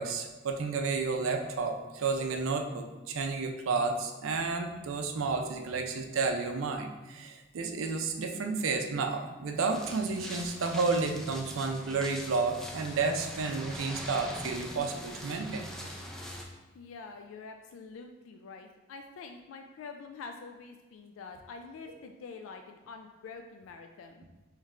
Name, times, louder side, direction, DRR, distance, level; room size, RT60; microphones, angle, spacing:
voice 1, 0.0-15.7, right 4 dB, 90° right, 5 dB, 0.5 m, -31 dB
sound 1, 9.7-16.4, equal, 5° left, 0.4 m, -42 dB
voice 2, 16.7-24.2, left 4 dB, 80° left, 4 dB, 0.3 m, -46 dB
3.6 x 3.2 x 3.2 m, 1.2 s
head